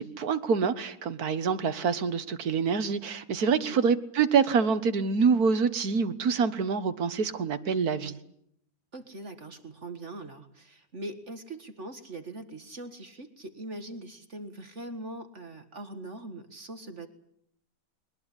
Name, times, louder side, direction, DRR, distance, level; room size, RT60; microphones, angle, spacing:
voice 1, 0.0-8.2, right 5 dB, 60° right, 11 dB, 1.8 m, -26 dB
voice 2, 3.5-3.9 8.9-17.1, right 2 dB, 45° right, 9 dB, 1.9 m, -41 dB
22.0 x 20.0 x 9.9 m, 0.74 s
omnidirectional pair, 1.9 m